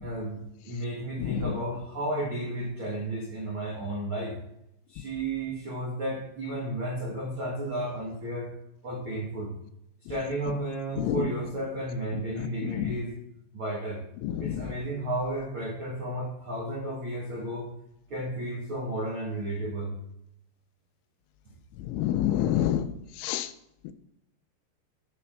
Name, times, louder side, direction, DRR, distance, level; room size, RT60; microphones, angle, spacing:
voice 1, 0.0-4.4 4.9-8.5 8.8-9.6 10.1-13.1 13.5-14.0 14.4-17.7 18.1-20.0, right 1 dB, 90° right, -3 dB, 1.1 m, -33 dB
voice 2, 21.9-22.9 23.2-23.5, left 12 dB, 90° left, 10 dB, 3.0 m, -26 dB
12.0 x 4.2 x 5.9 m, 0.80 s
omnidirectional pair, 5.2 m